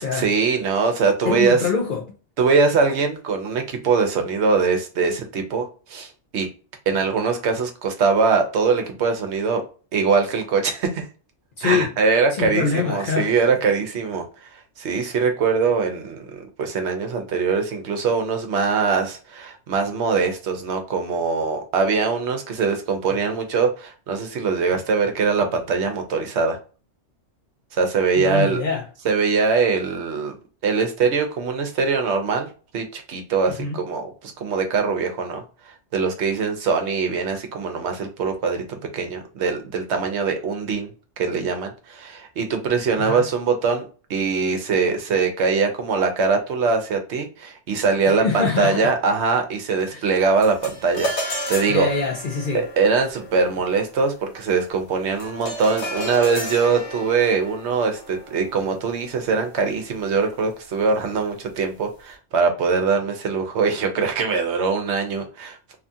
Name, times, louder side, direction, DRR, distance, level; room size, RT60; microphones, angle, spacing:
voice 1, 0.0-1.6 2.4-6.5 6.9-9.6 9.9-11.0 11.6-14.2 14.5-26.6 27.7-28.6 29.0-30.3 30.6-32.5 32.7-35.4 35.9-40.9 41.2-43.8 44.1-51.9 52.5-65.7, right 5 dB, 70° right, 0.9 m, -22 dB
voice 2, 1.3-2.0 11.6-11.9 12.4-13.3 28.2-28.8 33.5-33.8 43.0-43.3 48.1-48.9 49.9-50.1 51.7-52.6, left 5 dB, 55° left, 0.6 m, -24 dB
sound 1, 50.4-59.9, equal, 75° left, 1.1 m, -33 dB
2.7 x 2.3 x 2.6 m
omnidirectional pair, 1.3 m